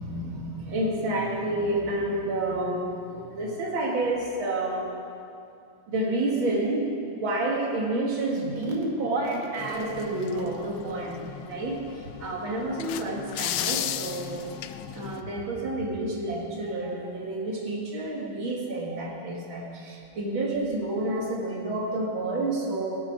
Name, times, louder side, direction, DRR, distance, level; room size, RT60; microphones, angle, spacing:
voice 1, 0.0-4.9 5.9-23.0, right 2 dB, 70° right, -1 dB, 2.6 m, -29 dB
sound 1, 9.6-15.2, left 11 dB, 80° left, 1.4 m, -35 dB
17.5 x 7.8 x 6.0 m, 2.4 s
omnidirectional pair, 2.3 m